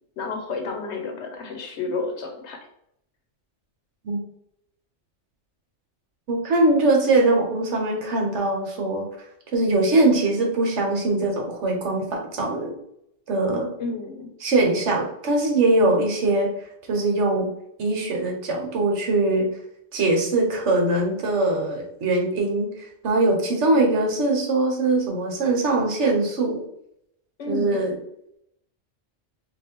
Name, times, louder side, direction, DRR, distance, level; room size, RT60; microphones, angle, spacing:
voice 1, 0.2-2.7 13.8-14.3 27.4-27.9, left 3 dB, 65° left, 4 dB, 0.9 m, -31 dB
voice 2, 6.3-9.0 9.5-12.7 13.3-13.7 14.4-16.5 16.9-17.5 17.8-19.5 19.9-26.6 27.5-28.0, right 2 dB, 65° right, 1 dB, 1.2 m, -22 dB
3.0 x 2.5 x 4.3 m, 0.76 s
omnidirectional pair, 1.3 m